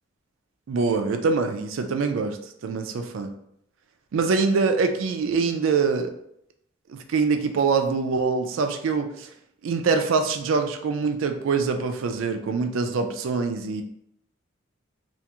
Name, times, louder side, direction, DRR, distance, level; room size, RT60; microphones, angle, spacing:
voice 1, 0.7-2.4 2.6-3.3 4.1-6.1 6.9-9.3 9.6-13.8, right 4 dB, 65° right, 6 dB, 0.3 m, -24 dB
2.4 x 2.3 x 2.8 m, 0.74 s
head